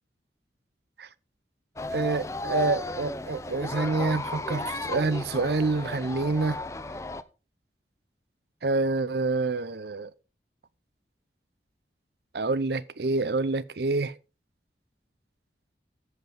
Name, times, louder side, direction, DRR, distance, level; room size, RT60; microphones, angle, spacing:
sound 1, 1.8-7.2, left 2 dB, 15° left, 0.5 m, -34 dB
voice 1, 1.9-6.6 8.6-10.1 12.3-14.1, right 3 dB, 65° right, 0.6 m, -27 dB
13.5 x 7.9 x 3.5 m
head